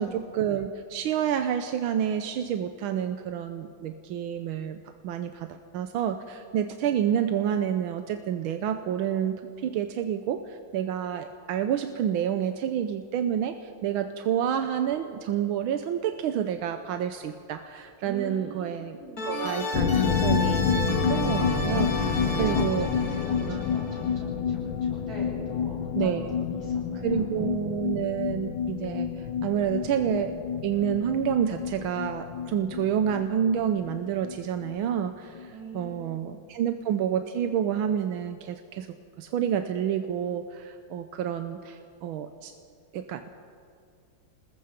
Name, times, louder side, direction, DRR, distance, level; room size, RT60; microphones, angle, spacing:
voice 1, 0.0-4.8 5.0-22.9 23.4-23.6 25.9-26.4 27.0-38.9 39.2-42.5 42.9-43.3, right 9 dB, 85° right, 8 dB, 1.6 m, -29 dB
voice 2, 18.0-19.3 22.1-27.3 35.5-36.5, right 1 dB, 45° right, -5 dB, 8.6 m, -42 dB
sound 1, 19.2-24.2, left 1 dB, 45° left, 2.5 m, -31 dB
sound 2, 19.7-35.1 35.4-35.5 35.8-35.9, left 7 dB, 80° left, 1.8 m, -29 dB
28.0 x 20.0 x 5.1 m, 2.3 s
omnidirectional pair, 2.2 m